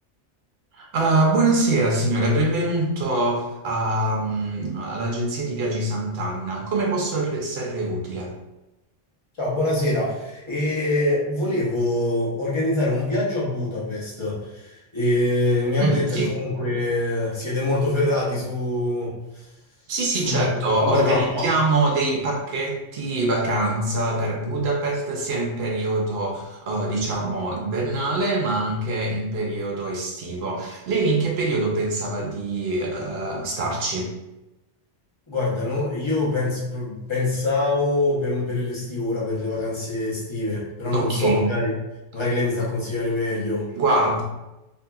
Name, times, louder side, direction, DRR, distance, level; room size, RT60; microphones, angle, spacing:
voice 1, 0.7-8.3 15.8-16.3 19.9-34.1 40.9-41.5 43.8-44.2, right 2 dB, 65° right, 0 dB, 0.8 m, -24 dB
voice 2, 9.4-19.4 20.2-21.5 35.3-41.7 42.1-43.7, left 2 dB, 30° left, -6 dB, 0.7 m, -24 dB
2.7 x 2.6 x 2.3 m, 0.98 s
omnidirectional pair, 1.2 m